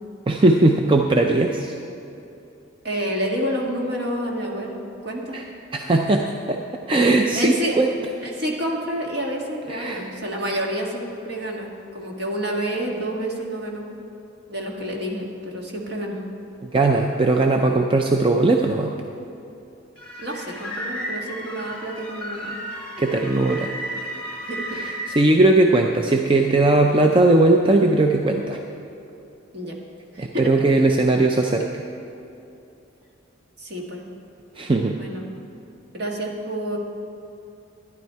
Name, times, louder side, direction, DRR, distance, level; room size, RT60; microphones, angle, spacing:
voice 1, 0.3-1.7 5.3-5.4 5.7-6.6 6.9-7.9 9.7-10.0 16.6-18.9 23.0-23.7 24.7-28.6 30.2-31.8 34.6-34.9, right 2 dB, 25° right, 2 dB, 0.4 m, -19 dB
voice 2, 2.8-5.4 7.3-7.8 8.2-13.9 14.5-16.2 20.2-22.6 24.4-24.8 29.5-29.8 30.1-30.5 33.6-34.0 35.0-35.3 35.9-36.8, equal, 55° right, -1 dB, 1.7 m, -29 dB
sound 1, 20.0-25.1, equal, 5° left, 2.6 m, -33 dB
12.5 x 11.0 x 4.6 m, 2.8 s
head